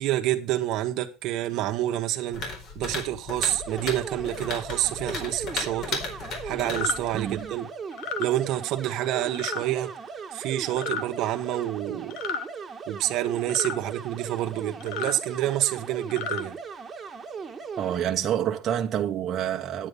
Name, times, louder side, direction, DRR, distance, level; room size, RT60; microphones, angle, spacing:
voice 1, 0.0-2.4 2.7-6.0 6.4-7.7 8.2-9.9 10.3-12.2 12.9-16.6, right 13 dB, 65° right, 1.2 m, -28 dB
sound 1, 2.3-7.5, left 4 dB, 60° left, 4.5 m, -36 dB
sound 2, 3.4-18.0, right 5 dB, 25° right, 1.6 m, -38 dB
sound 3, 6.6-7.0 7.9-8.3 9.3-9.6 10.7-11.0 12.1-12.5 13.5-13.8 14.8-15.2 16.0-16.4, left 6 dB, 75° left, 1.1 m, -32 dB
voice 2, 7.1-7.5 17.8-19.9, right 10 dB, 45° right, 1.2 m, -27 dB
9.3 x 9.0 x 5.4 m
cardioid pair, 115°, 0 cm